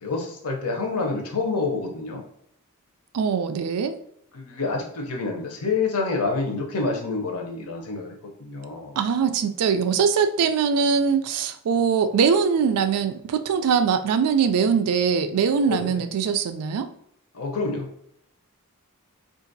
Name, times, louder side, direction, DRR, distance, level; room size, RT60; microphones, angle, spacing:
voice 1, 0.0-2.2 4.3-8.9 15.6-15.9 17.3-17.9, left 3 dB, 80° left, 2 dB, 0.7 m, -28 dB
voice 2, 3.1-4.0 9.0-16.9, right 6 dB, 85° right, 10 dB, 0.4 m, -22 dB
3.9 x 2.5 x 2.6 m, 0.70 s
head